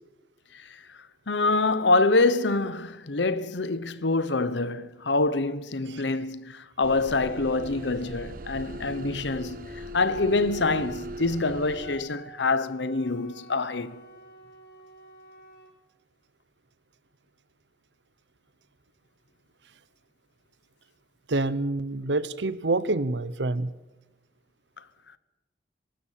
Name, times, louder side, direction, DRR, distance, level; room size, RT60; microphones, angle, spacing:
voice 1, 1.3-14.0, left 3 dB, 80° left, 1.0 m, -26 dB
sound 1, 6.8-12.0, right 1 dB, 50° right, 1.2 m, -39 dB
Wind instrument woodwind instrument, 11.8-15.7, right 1 dB, 60° left, 3.2 m, -49 dB
voice 2, 21.3-23.7, right 2 dB, 80° right, 0.9 m, -27 dB
23.5 x 13.0 x 8.6 m
head